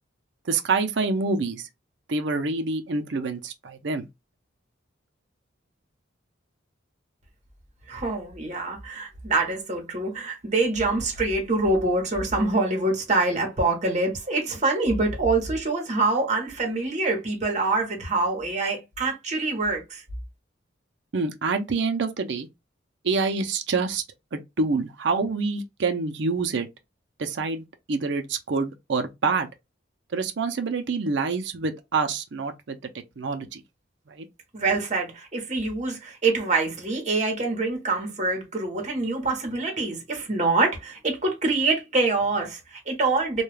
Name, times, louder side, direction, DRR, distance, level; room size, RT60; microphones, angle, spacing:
voice 1, 0.5-1.7 2.1-4.1 21.1-22.5 23.0-24.0 24.3-26.7 27.2-29.5 30.1-32.8 33.2-33.6 34.1-34.3, right 4 dB, 65° right, 0.5 m, -26 dB
voice 2, 7.9-20.0 34.5-43.4, right 3 dB, 40° right, 0.9 m, -25 dB
2.3 x 2.2 x 3.1 m
head